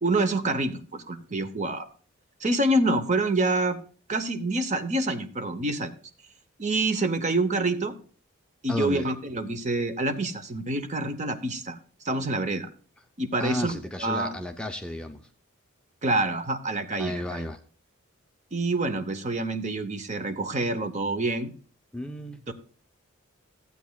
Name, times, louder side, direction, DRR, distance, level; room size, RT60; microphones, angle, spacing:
voice 1, 0.0-1.9 2.4-3.8 4.1-5.9 6.6-8.0 8.6-11.8 12.0-12.7 13.2-14.3 16.0-17.4 18.5-21.5 22.5-22.6, right 2 dB, 35° right, 8 dB, 0.7 m, -27 dB
voice 2, 8.7-9.1 13.4-15.3 17.0-17.6 21.9-22.4, left 1 dB, 5° left, 5 dB, 0.4 m, -33 dB
14.5 x 8.2 x 2.2 m, 0.41 s
head